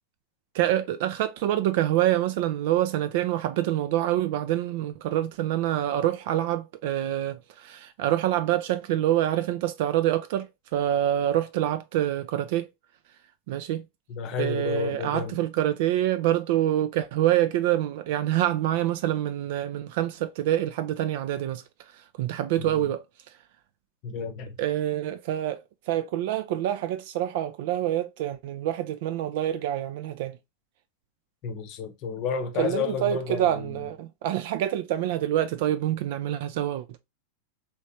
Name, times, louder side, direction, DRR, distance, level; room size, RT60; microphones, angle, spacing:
voice 1, 0.5-10.5 10.7-12.7 13.5-13.8 14.4-21.6 21.9-23.0 24.6-25.6 25.9-30.4 32.6-36.8, right 12 dB, 50° right, 0.4 m, -26 dB
voice 2, 14.1-15.3 22.6-22.8 24.0-24.5 31.4-33.8, left 6 dB, 40° left, 0.8 m, -31 dB
3.2 x 3.1 x 2.8 m
figure-of-eight pair, 90°, 0 cm